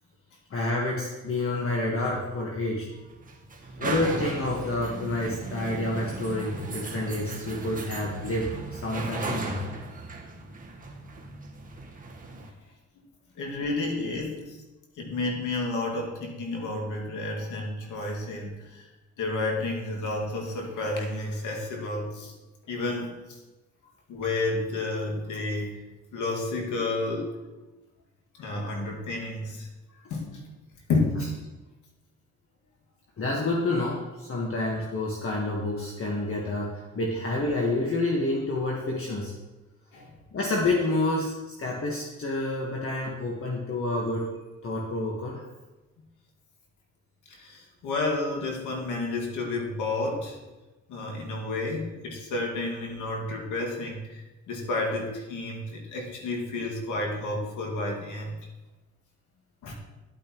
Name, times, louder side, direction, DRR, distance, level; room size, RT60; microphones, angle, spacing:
voice 1, 0.5-2.9 3.8-9.6 33.2-39.3 40.3-41.3 41.6-44.3 44.6-45.4, left 2 dB, 45° left, -2 dB, 1.5 m, -28 dB
sound 1, 1.9-12.5, right 3 dB, 25° right, 1.4 m, -37 dB
voice 2, 13.4-14.6 15.0-18.8 19.2-22.3 22.7-23.1 24.1-25.8 26.1-27.4 28.3-29.7 30.1-30.4 30.9-31.3 39.9-40.1 47.3-50.4 50.9-58.3 59.6-59.7, left 2 dB, 80° left, 0 dB, 2.1 m, -31 dB
11.0 x 8.8 x 3.1 m, 1.1 s
cardioid pair, 90°, 30 cm